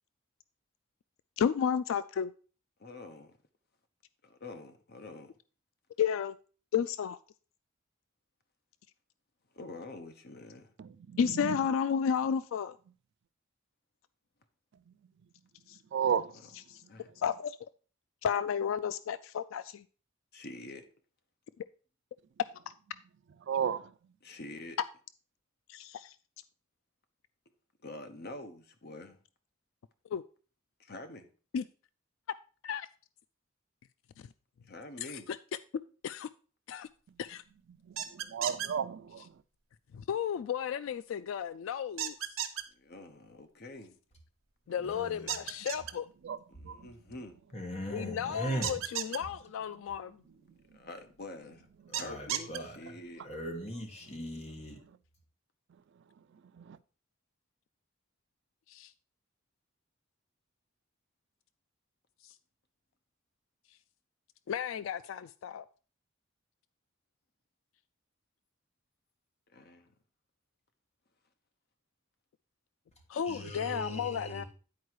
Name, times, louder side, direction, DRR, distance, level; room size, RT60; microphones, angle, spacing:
voice 1, 1.4-2.3 6.0-6.4 6.7-7.2 11.2-12.8 15.7-15.8 16.7-16.8 17.2-17.6 18.2-19.8 25.7-26.2 30.1-30.2 31.5-31.6 32.6-32.9 35.0-35.4 36.0-36.3 36.7-36.9 37.2-37.4 39.9-42.3 44.7-46.1 47.9-50.1 58.7-58.9 62.2-62.3 64.5-65.7 73.1-74.4, left 7 dB, 75° left, 0.3 m, -33 dB
voice 2, 2.8-3.4 4.2-5.3 9.5-10.7 16.9-17.1 20.3-20.9 24.2-24.8 27.8-29.2 30.8-31.3 34.7-35.3 42.7-44.0 46.5-47.4 50.8-51.7 52.0-53.3 69.5-69.9, left 2 dB, 55° left, 1.0 m, -46 dB
voice 3, 10.8-11.6 15.9-16.4 23.5-23.9 37.9-39.3 46.2-46.4 46.6-46.9 56.6-56.8, right 7 dB, 60° right, 0.4 m, -33 dB
sound 1, 38.0-38.7 42.0-42.6 45.3-45.9 48.6-49.2 51.9-52.6, right 10 dB, 80° right, 1.0 m, -33 dB
voice 4, 44.8-45.4 47.5-48.8 51.9-52.8 53.2-54.8 73.3-74.5, equal, 35° left, 1.7 m, -39 dB
9.5 x 4.6 x 4.7 m
head